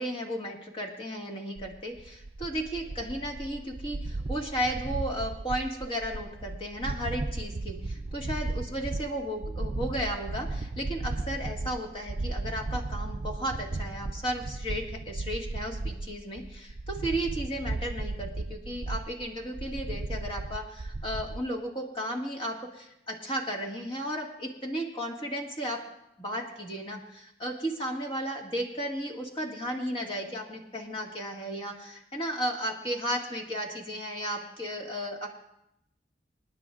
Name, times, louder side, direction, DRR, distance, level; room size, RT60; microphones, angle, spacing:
voice 1, 0.0-25.8 26.2-35.3, equal, 30° left, 0 dB, 1.8 m, -34 dB
sound 1, 1.6-21.4, right 2 dB, 35° right, 0.4 m, -35 dB
27.5 x 9.9 x 2.4 m, 0.81 s
head